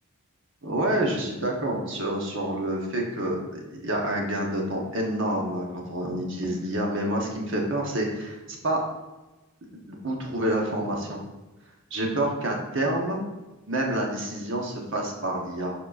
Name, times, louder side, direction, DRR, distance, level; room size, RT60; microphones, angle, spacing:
voice 1, 0.6-8.8 10.0-11.2 11.9-13.2 13.7-15.7, right 1 dB, 55° right, -1 dB, 1.1 m, -28 dB
7.1 x 5.7 x 2.5 m, 1.1 s
head